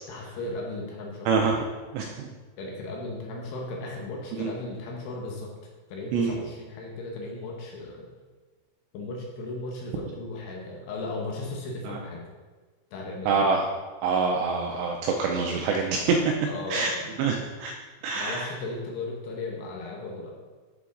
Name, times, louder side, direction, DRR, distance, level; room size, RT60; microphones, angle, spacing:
voice 1, 0.1-1.3 2.6-5.5 5.9-8.1 8.9-12.2 12.9-13.3 16.4-17.2 18.2-20.4, left 2 dB, 70° left, -1 dB, 2.9 m, -36 dB
voice 2, 1.9-2.3 4.4-4.5 6.1-6.3 13.3-13.6 14.0-16.2 16.7-16.9 17.2-17.7 18.0-18.5, right 4 dB, 80° right, 2 dB, 2.5 m, -25 dB
11.5 x 5.0 x 3.8 m, 1.4 s
omnidirectional pair, 5.5 m